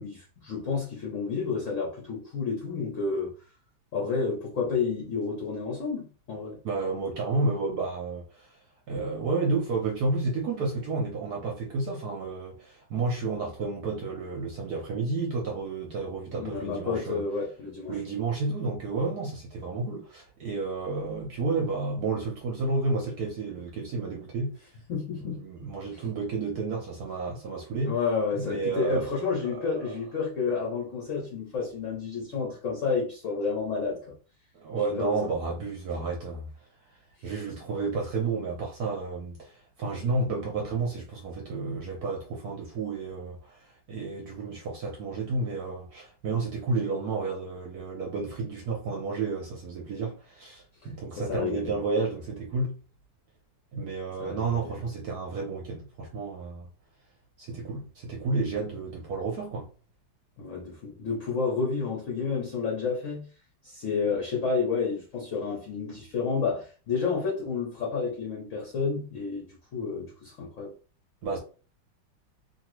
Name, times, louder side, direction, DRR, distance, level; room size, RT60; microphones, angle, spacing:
voice 1, 0.0-3.3 3.9-6.6 16.3-18.0 24.9-26.0 27.9-34.1 34.7-35.3 37.2-37.3 51.2-51.8 54.2-54.8 60.4-63.3 63.6-70.7, left 5 dB, 60° left, 0.8 m, -30 dB
voice 2, 6.6-8.6 8.9-17.2 17.9-24.5 25.2-28.0 28.3-29.9 34.5-36.5 37.2-52.8 53.7-56.7 57.4-59.7 71.2-71.4, right 3 dB, 65° right, 1.0 m, -31 dB
2.9 x 2.6 x 3.0 m
omnidirectional pair, 2.2 m